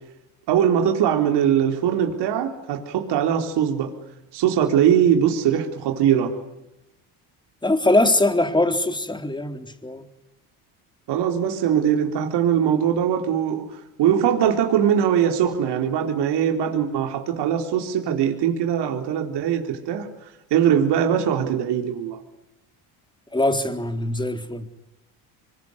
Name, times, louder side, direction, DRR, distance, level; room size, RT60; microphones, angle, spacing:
voice 1, 0.5-3.9 4.3-6.3 11.1-13.7 14.0-20.1 20.5-22.2, right 9 dB, 65° right, 4.0 m, -21 dB
voice 2, 7.6-10.1 23.3-24.7, left 2 dB, 10° left, 3.8 m, -22 dB
25.5 x 22.0 x 9.8 m
supercardioid pair, 80°, 43 cm